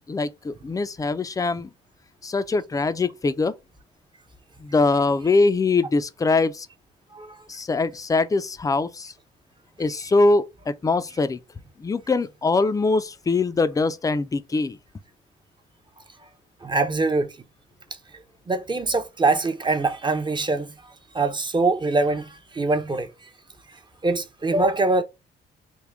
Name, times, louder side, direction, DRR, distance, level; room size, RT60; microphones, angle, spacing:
voice 1, 0.1-1.7 2.2-3.5 4.6-6.7 7.5-9.1 9.8-11.4 11.8-14.8, left 3 dB, 15° left, 0.4 m, -22 dB
voice 2, 7.1-7.4 16.6-17.3 18.5-23.1 24.0-25.0, right 3 dB, 25° right, 0.6 m, -23 dB
3.5 x 2.2 x 3.4 m
cardioid pair, 90°, 20 cm